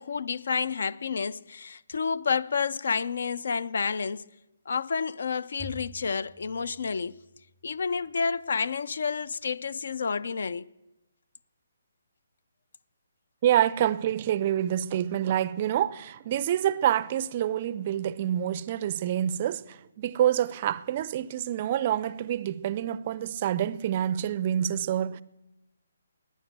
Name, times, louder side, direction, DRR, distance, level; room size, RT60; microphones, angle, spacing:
voice 1, 0.0-4.2 4.7-7.2 7.6-10.7, left 5 dB, 70° left, 0.4 m, -30 dB
Bowed string instrument, 5.6-8.1, equal, 5° left, 0.8 m, -48 dB
voice 2, 13.4-25.2, right 11 dB, 35° right, 0.4 m, -27 dB
10.5 x 9.3 x 8.0 m
hypercardioid pair, 160°, 0 cm